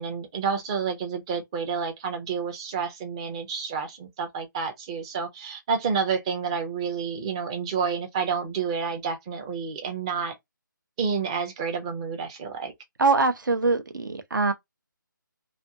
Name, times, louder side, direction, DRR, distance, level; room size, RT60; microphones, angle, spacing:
voice 1, 0.0-10.3 11.0-12.7, right 6 dB, 15° right, 0.5 m, -29 dB
voice 2, 13.0-14.5, right 3 dB, 65° right, 0.7 m, -23 dB
2.5 x 2.3 x 2.6 m
figure-of-eight pair, 160°, 11 cm